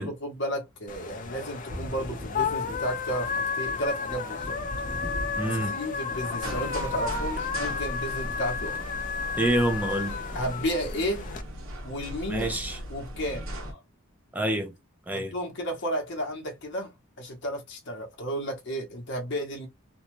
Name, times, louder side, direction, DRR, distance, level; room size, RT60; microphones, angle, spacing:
voice 1, 0.0-4.6 5.4-8.8 10.3-11.3 11.8-12.5 12.9-13.8 15.1-19.7, equal, 60° left, 0.9 m, -33 dB
sound 1, 0.9-11.4, left 5 dB, 40° left, 0.5 m, -32 dB
Thunder, 1.2-11.0 11.3-12.5, equal, 45° right, 1.2 m, -43 dB
voice 2, 5.4-5.8 9.4-10.2 12.3-12.8 14.3-14.7 15.1-15.3, right 1 dB, 10° right, 0.6 m, -27 dB
sound 2, 6.4-13.7, equal, 75° right, 1.0 m, -38 dB
2.6 x 2.3 x 3.0 m
head